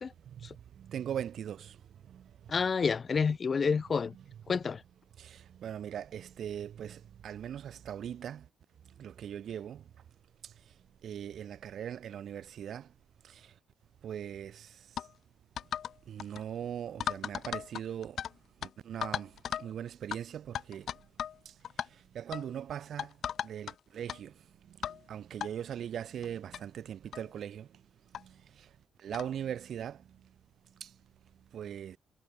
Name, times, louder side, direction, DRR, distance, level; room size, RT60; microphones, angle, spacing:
voice 1, 0.2-2.5 3.6-3.8 4.1-4.2 5.2-8.5 8.8-10.0 10.4-12.9 13.2-13.6 14.0-15.1 16.1-18.3 18.6-30.4 30.6-32.0, right 9 dB, 65° right, 1.7 m, -41 dB
voice 2, 2.5-4.1 4.5-4.8, left 5 dB, 40° left, 1.4 m, -29 dB
sound 1, 15.0-15.1 15.6-15.9 16.2-16.4 17.0-18.3 18.6-18.7 19.0-19.7 20.1-20.2 20.5-21.4 21.6-21.9 22.3-22.5 23.0-23.7 24.1-24.2 24.8-25.0 25.4-25.5 26.2-26.3 26.5-26.6 27.1-27.3 28.1-28.2 29.1-29.3, left 9 dB, 65° left, 1.7 m, -36 dB
cardioid pair, 90°, 0 cm